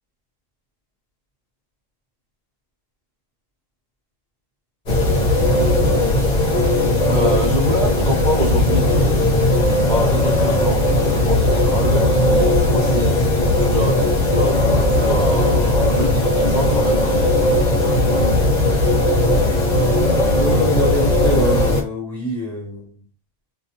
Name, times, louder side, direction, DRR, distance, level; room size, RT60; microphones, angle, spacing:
sound 1, 4.9-21.8, left 1 dB, 45° left, 0.7 m, -17 dB
voice 1, 7.1-9.3 9.8-17.3, right 1 dB, 45° right, 0.8 m, -26 dB
voice 2, 20.4-22.8, equal, 15° left, 0.9 m, -24 dB
2.3 x 2.2 x 2.8 m
omnidirectional pair, 1.2 m